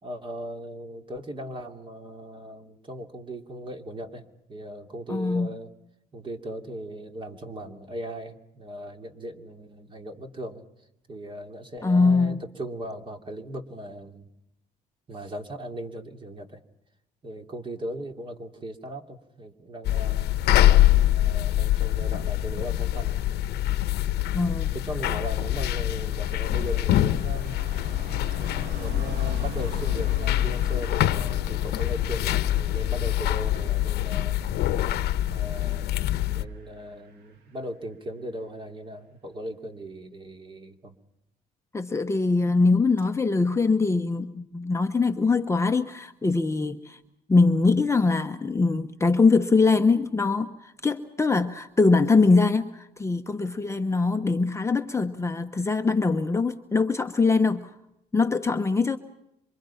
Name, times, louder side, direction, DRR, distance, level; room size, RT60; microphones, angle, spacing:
voice 1, 0.0-5.7 6.1-10.6 11.1-14.3 15.1-16.6 17.2-20.3 21.0-23.2 23.6-23.9 24.7-27.6 28.4-34.4 35.3-40.9, equal, 30° right, 5 dB, 2.8 m, -38 dB
voice 2, 5.1-5.5 11.8-12.4 24.3-24.7 41.7-47.0 47.3-57.7 58.1-59.0, left 3 dB, 15° left, 6 dB, 1.0 m, -22 dB
sound 1, 19.8-36.4, left 13 dB, 75° left, 1.1 m, -24 dB
Car passing by, 23.2-38.0 38.2-38.6, right 5 dB, 85° right, 2.6 m, -46 dB
27.0 x 25.0 x 5.8 m, 0.83 s
cardioid pair, 110°, 17 cm